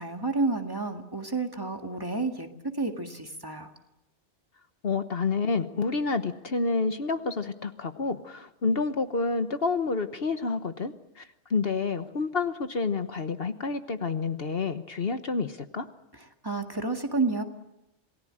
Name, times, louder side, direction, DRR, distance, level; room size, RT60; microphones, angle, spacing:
voice 1, 0.0-3.7 16.4-17.4, right 3 dB, 20° right, 4 dB, 2.0 m, -30 dB
voice 2, 4.8-15.9, left 4 dB, 55° left, 9 dB, 1.3 m, -29 dB
27.5 x 19.5 x 8.8 m, 0.93 s
omnidirectional pair, 1.2 m